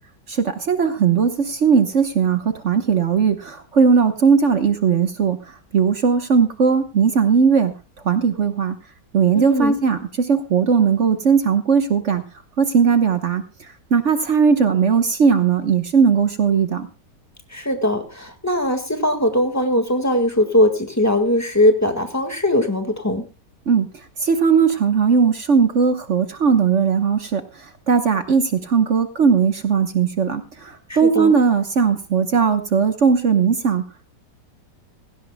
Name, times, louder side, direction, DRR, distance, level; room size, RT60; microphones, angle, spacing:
voice 1, 0.3-7.7 8.0-8.8 9.1-12.2 12.6-13.4 13.9-16.9 23.7-33.8, right 6 dB, 50° right, 8 dB, 1.2 m, -18 dB
voice 2, 9.3-9.8 17.5-23.2 30.9-31.3, left 1 dB, 10° left, 6 dB, 1.5 m, -20 dB
17.0 x 16.5 x 2.2 m, 0.31 s
omnidirectional pair, 1.9 m